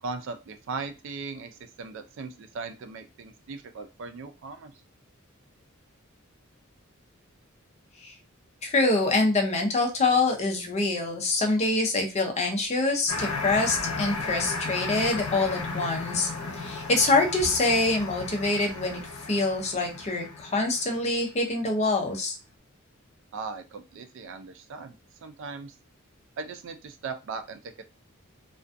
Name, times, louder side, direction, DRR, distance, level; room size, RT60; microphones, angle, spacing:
voice 1, 0.0-4.7 23.3-24.9 25.2-25.7 26.4-27.8, right 4 dB, 60° right, 8 dB, 0.4 m, -38 dB
voice 2, 8.6-19.0 19.3-22.4, left 2 dB, 30° left, 3 dB, 0.5 m, -25 dB
sound 1, 13.1-21.1, left 4 dB, 80° left, 0.7 m, -34 dB
2.4 x 2.2 x 2.5 m, 0.28 s
head